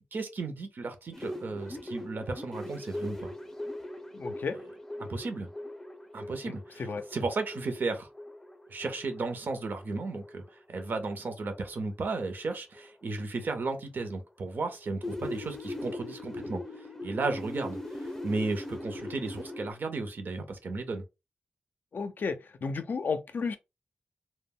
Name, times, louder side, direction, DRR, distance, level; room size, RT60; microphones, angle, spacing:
voice 1, 0.1-3.3 5.0-5.5 6.1-8.1 8.7-10.4 10.7-16.6 17.0-21.0, right 3 dB, 60° right, 0.7 m, -34 dB
sound 1, 1.1-11.8 12.1-12.5 12.8-13.0 13.4-13.5 14.1-14.2 14.7-19.7, left 1 dB, 10° left, 0.5 m, -41 dB
voice 2, 4.1-4.6 6.5-7.0 21.9-23.6, left 5 dB, 60° left, 0.4 m, -33 dB
2.1 x 2.0 x 3.5 m
wide cardioid pair, 95°, 4 cm